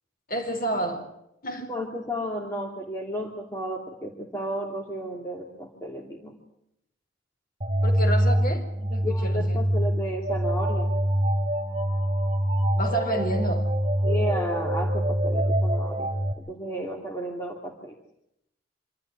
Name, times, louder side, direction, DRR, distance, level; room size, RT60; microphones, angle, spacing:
voice 1, 0.3-1.0 1.4-1.7 7.8-9.6 12.7-13.7, right 1 dB, 50° left, 2 dB, 4.6 m, -30 dB
voice 2, 1.7-6.3 9.0-11.0 14.0-18.0, equal, 15° left, -1 dB, 2.7 m, -33 dB
sound 1, 7.6-16.3, equal, 35° right, 2.8 m, -25 dB
26.5 x 13.0 x 9.9 m, 0.81 s
head